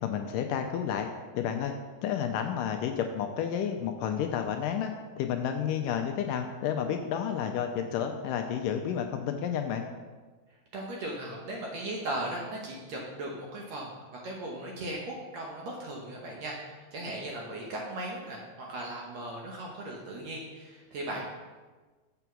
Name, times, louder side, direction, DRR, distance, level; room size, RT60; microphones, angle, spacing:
voice 1, 0.0-1.1 1.3-1.7 2.0-4.9 5.2-9.8, left 8 dB, 80° left, 5 dB, 2.0 m, -31 dB
voice 2, 10.7-21.3, right 1 dB, 65° right, -2 dB, 1.8 m, -37 dB
7.0 x 6.8 x 6.0 m, 1.3 s
omnidirectional pair, 4.2 m